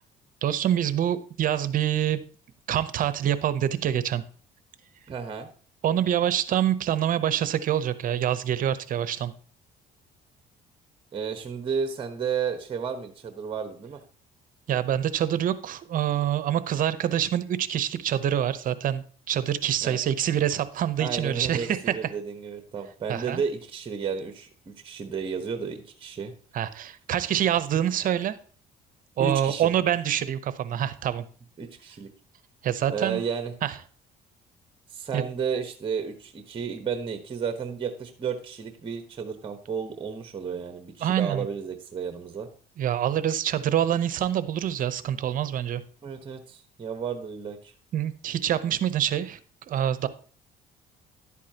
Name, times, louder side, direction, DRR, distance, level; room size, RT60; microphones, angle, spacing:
voice 1, 0.4-2.2 2.7-4.2 5.8-9.3 14.7-21.9 23.1-23.4 26.5-28.4 29.2-31.2 32.6-33.2 33.6-33.7 35.1-35.2 41.0-41.5 42.8-45.8 47.9-49.4 49.7-50.1, right 10 dB, 55° right, 14 dB, 0.7 m, -26 dB
voice 2, 5.1-5.5 11.1-14.0 19.8-20.0 21.0-26.3 29.2-29.7 31.6-32.1 32.9-33.5 34.9-42.5 46.0-47.7, right 6 dB, 30° right, 7 dB, 1.1 m, -32 dB
11.0 x 8.4 x 2.9 m, 0.42 s
cardioid pair, 110°, 17 cm